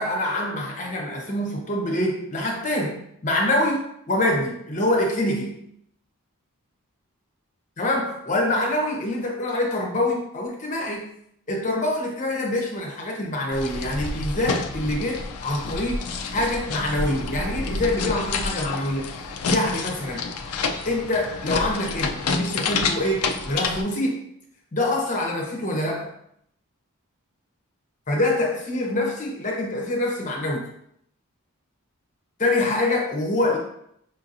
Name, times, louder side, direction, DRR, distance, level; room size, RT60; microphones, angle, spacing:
voice 1, 0.0-5.6 7.8-11.1 11.5-16.0 16.3-19.1 19.4-20.3 20.8-24.2 24.7-26.1 28.1-30.7 32.4-33.6, left 1 dB, 35° left, -1 dB, 0.8 m, -25 dB
sound 1, 13.5-23.8, left 4 dB, 85° left, 0.4 m, -29 dB
5.7 x 2.7 x 2.6 m, 0.71 s
head